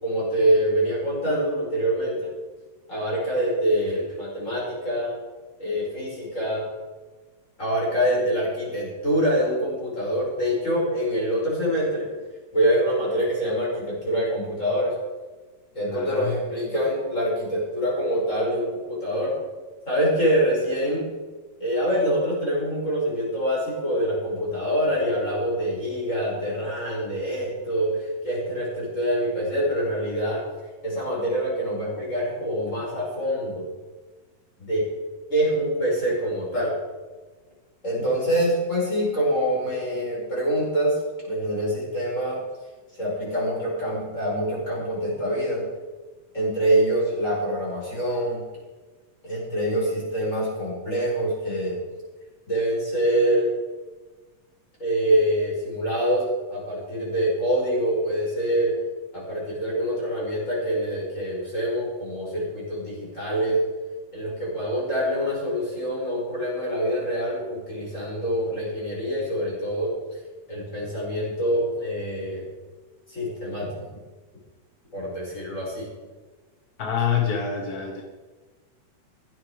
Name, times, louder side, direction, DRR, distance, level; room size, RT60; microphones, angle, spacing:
voice 1, 0.0-2.3 2.9-5.1 5.6-6.6 7.6-12.1 12.5-14.9 15.7-19.3 19.9-21.1 21.6-30.4 30.8-33.7 34.6-34.8 35.3-36.7 37.8-41.0 41.2-42.4 43.0-45.6 46.3-48.4 49.2-51.8 52.5-53.5 54.8-58.7 59.1-63.6 64.1-69.9 70.5-72.5 73.1-73.7 74.9-75.9, equal, 25° left, -5 dB, 5.8 m, -25 dB
voice 2, 15.9-16.3 76.8-78.0, left 7 dB, 50° left, 3 dB, 1.1 m, -26 dB
15.5 x 10.5 x 5.0 m, 1.3 s
omnidirectional pair, 3.3 m